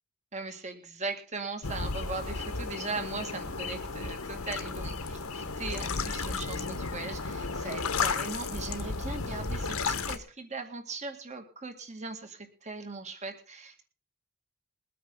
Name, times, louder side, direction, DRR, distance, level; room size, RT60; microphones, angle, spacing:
voice 1, 0.3-13.8, right 3 dB, 35° right, 6 dB, 2.2 m, -39 dB
sound 1, 1.6-10.2, left 4 dB, 85° left, 1.5 m, -33 dB
22.0 x 9.2 x 4.0 m, 0.37 s
head